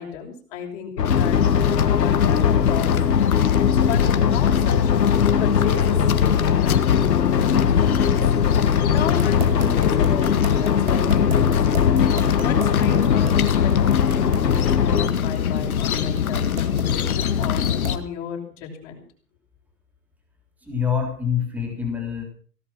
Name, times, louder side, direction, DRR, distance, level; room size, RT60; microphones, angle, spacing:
voice 1, 0.0-3.0 3.9-5.1 5.4-8.2 8.9-11.9 12.4-19.0, left 7 dB, 35° left, 0 dB, 6.0 m, -33 dB
sound 1, 1.0-15.1, left 7 dB, 75° left, 2.0 m, -20 dB
sound 2, 1.0-18.0, left 8 dB, 60° left, 1.9 m, -24 dB
sound 3, 9.2-18.1, right 8 dB, 35° right, 4.8 m, -36 dB
voice 2, 20.6-22.2, left 7 dB, 5° right, 2 dB, 3.4 m, -25 dB
17.5 x 14.0 x 6.0 m, 0.44 s
hypercardioid pair, 155°, 49 cm